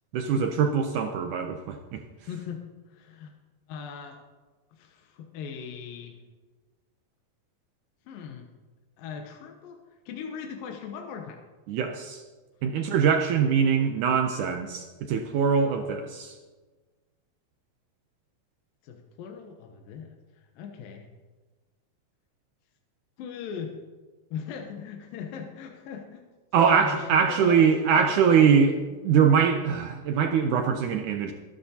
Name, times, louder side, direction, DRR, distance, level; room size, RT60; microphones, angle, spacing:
voice 1, 0.1-2.0 11.7-12.2 12.6-16.4 26.5-28.8 29.0-31.3, right 6 dB, 75° right, 5 dB, 1.8 m, -23 dB
voice 2, 2.3-2.6 2.9-3.3 3.7-4.2 4.7-6.2 8.1-8.5 9.0-9.8 10.1-11.4 18.8-20.1 20.6-21.1 23.2-23.7 24.3-26.2 26.5-28.3, left 7 dB, 75° left, 3 dB, 2.6 m, -39 dB
24.0 x 10.5 x 2.8 m, 1.3 s
omnidirectional pair, 4.2 m